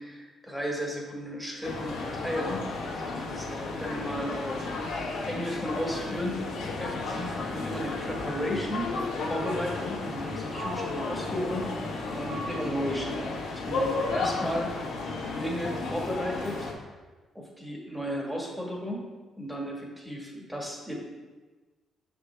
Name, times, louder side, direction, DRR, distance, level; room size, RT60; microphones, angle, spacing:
voice 1, 0.0-4.7 5.3-6.4 6.8-8.9 9.3-11.7 12.1-13.2 13.5-14.7 15.4-16.7 17.3-19.0 19.4-20.9, equal, 5° right, -1 dB, 1.5 m, -34 dB
sound 1, 1.6-16.7, left 3 dB, 80° left, 1.4 m, -33 dB
6.8 x 5.2 x 3.4 m, 1.3 s
cardioid pair, 90°, 0 cm